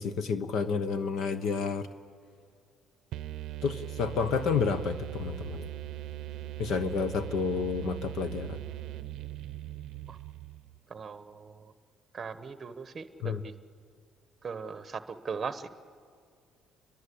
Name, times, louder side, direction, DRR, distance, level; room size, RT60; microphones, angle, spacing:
voice 1, 0.0-1.9 3.6-5.7 6.6-8.6 13.2-13.4, left 5 dB, 60° left, 11 dB, 1.0 m, -30 dB
sound 1, 3.1-10.8, right 14 dB, 65° right, 0.6 m, -40 dB
voice 2, 10.9-11.7 12.1-13.5 14.4-15.8, right 5 dB, 25° right, 11 dB, 1.0 m, -39 dB
29.5 x 22.5 x 8.5 m, 2.1 s
cardioid pair, 170°, 0 cm